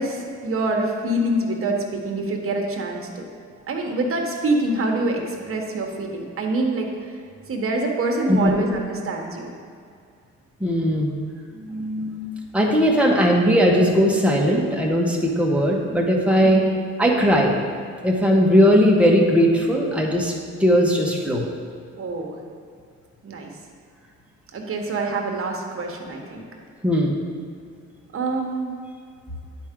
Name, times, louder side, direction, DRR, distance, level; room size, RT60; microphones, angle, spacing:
voice 1, 0.0-3.2 3.7-7.1 7.5-9.5 16.4-16.6 22.0-22.4 23.2-23.5 24.5-26.4 28.1-28.7, right 2 dB, 45° right, 1 dB, 1.2 m, -25 dB
voice 2, 10.6-11.1 11.5-12.2 12.5-16.6 17.0-17.6 18.0-20.3 20.6-21.5 26.8-27.2, equal, 5° right, -1 dB, 1.2 m, -18 dB
10.5 x 4.5 x 3.7 m, 2.3 s
cardioid pair, 90°, 30 cm